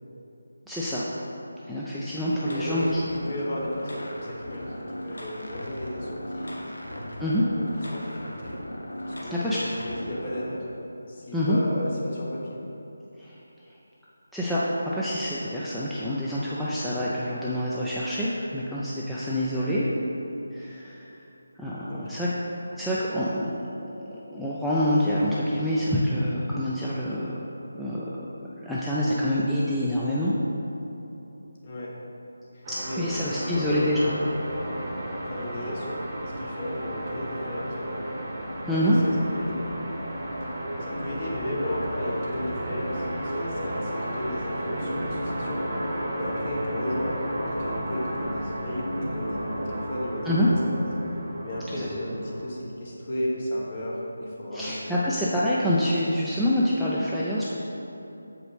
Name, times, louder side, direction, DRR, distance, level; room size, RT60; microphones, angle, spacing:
voice 1, 0.7-1.0 1.6-3.0 7.2-7.4 9.3-9.6 11.3-11.6 13.2-13.4 14.3-14.7 14.9-19.9 20.5-21.1 21.6-22.3 22.7-27.4 27.7-28.3 28.6-30.3 32.7-34.2 38.7-39.0 50.2-50.5 51.8-51.9 54.5-57.4, equal, ahead, -10 dB, 0.4 m, -26 dB
sound 1, 2.3-10.5, equal, 85° left, 1.0 m, -38 dB
voice 2, 2.5-6.7 7.2-8.5 9.1-10.7 11.1-12.6 19.5-19.9 21.9-22.1 31.6-31.9 32.5-33.8 34.4-34.7 35.3-36.0 36.4-38.1 38.8-39.1 39.4-39.6 40.8-45.9 46.1-50.9 51.4-55.1, left 1 dB, 35° left, -5 dB, 1.2 m, -34 dB
sound 2, 32.6-52.6, right 1 dB, 25° right, 0.9 m, -33 dB
7.3 x 4.9 x 3.2 m, 3.0 s
figure-of-eight pair, 160°, 0 cm